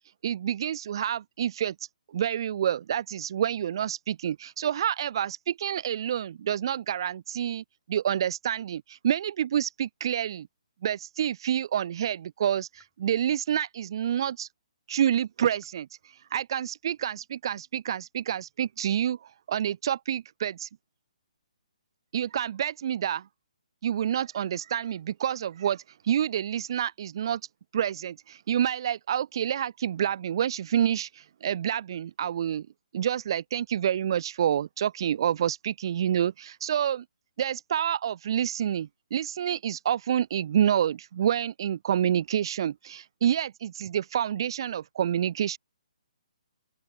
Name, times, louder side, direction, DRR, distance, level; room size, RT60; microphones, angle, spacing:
voice 1, 0.2-10.5 10.8-14.5 14.9-20.7 22.1-23.2 23.8-27.4 27.7-32.7 32.9-37.0 37.4-45.6, right 9 dB, 40° right, 0.3 m, -28 dB
sound 1, 11.4-11.7 12.7-13.1 14.2-14.4 15.6-15.9 17.0-17.3, left 7 dB, 5° left, 7.0 m, -66 dB
open air
hypercardioid pair, 165°, 4 cm